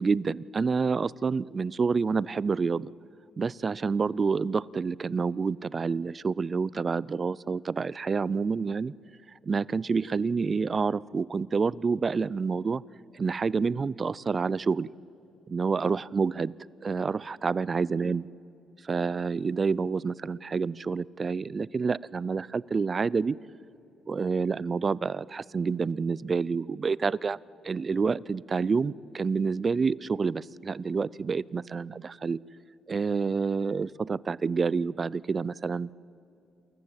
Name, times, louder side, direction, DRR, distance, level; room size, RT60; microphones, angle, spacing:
voice 1, 0.0-2.9 3.4-8.9 9.5-12.8 13.1-14.9 15.5-16.5 16.8-18.3 18.8-23.4 24.1-27.4 27.6-32.4 32.9-35.9, right 5 dB, 35° right, 23 dB, 0.4 m, -28 dB
27.5 x 14.5 x 8.1 m, 2.6 s
cardioid pair, 90°, 0 cm